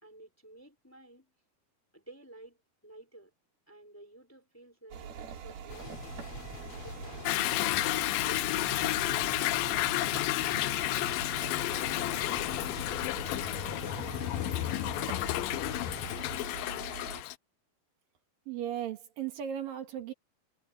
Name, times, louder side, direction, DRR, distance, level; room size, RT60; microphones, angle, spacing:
voice 1, 0.0-1.3 1.9-3.3 3.7-6.1 6.5-9.8, right 2 dB, 5° left, 2.9 m, -53 dB
sound 1, 4.9-17.2, right 7 dB, 90° right, 4.6 m, -44 dB
sound 2, 5.7-16.4, left 5 dB, 45° left, 2.6 m, -46 dB
Toilet flush / Drip / Trickle dribble, 7.3-17.4, left 17 dB, 80° left, 2.1 m, -31 dB
voice 2, 18.5-20.1, right 10 dB, 70° right, 3.5 m, -36 dB
omnidirectional pair, 4.2 m